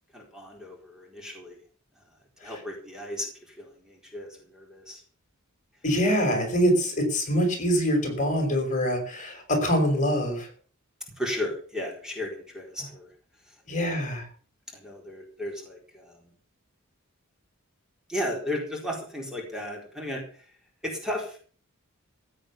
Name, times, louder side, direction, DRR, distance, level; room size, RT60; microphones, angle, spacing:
voice 1, 0.1-1.6 2.4-5.0 11.2-13.1 13.5-14.0 14.7-16.3 18.1-20.5 20.8-21.5, left 1 dB, 5° right, 0 dB, 4.2 m, -35 dB
voice 2, 5.8-10.5 13.7-14.3, equal, 35° left, 4 dB, 5.4 m, -24 dB
16.0 x 9.0 x 7.1 m, 0.43 s
head